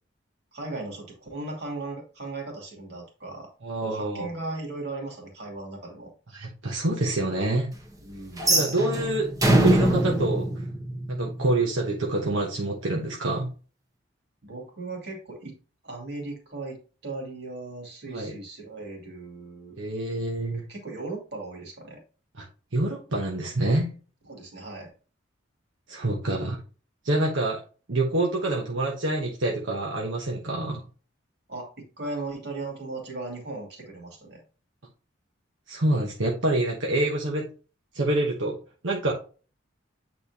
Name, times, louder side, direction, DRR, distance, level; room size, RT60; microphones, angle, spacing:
voice 1, 0.5-3.5 3.8-6.1 8.0-8.5 14.4-15.6 15.8-19.8 20.7-22.0 24.3-24.9 31.5-34.4, right 2 dB, 55° right, 0 dB, 2.5 m, -37 dB
voice 2, 3.6-4.3 6.3-7.7 8.5-9.3 9.6-10.6 11.1-13.5 18.1-18.3 19.8-20.6 22.4-22.5 22.7-23.9 25.9-26.6 27.0-27.6 27.9-30.8 35.7-37.5 37.9-38.6 38.8-39.1, right 2 dB, 80° right, -1 dB, 1.1 m, -26 dB
sound 1, 8.4-11.5, right 1 dB, 20° right, 1.0 m, -23 dB
8.5 x 4.4 x 2.8 m, 0.36 s
head